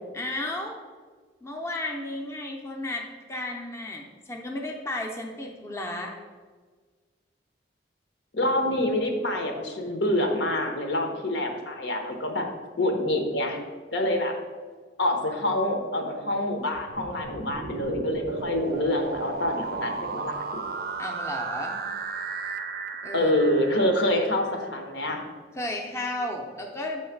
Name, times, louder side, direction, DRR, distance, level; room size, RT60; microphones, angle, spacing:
voice 1, 0.1-0.8 1.4-6.2 21.0-21.9 23.0-23.3 25.5-27.0, left 1 dB, 15° left, 0 dB, 0.6 m, -33 dB
voice 2, 8.3-12.5 12.8-13.6 13.9-14.3 15.0-20.6 23.1-25.2, left 1 dB, 80° left, 3 dB, 1.0 m, -26 dB
sound 1, 16.8-24.7, right 4 dB, 55° right, 0.4 m, -35 dB
7.1 x 3.1 x 5.8 m, 1.5 s
head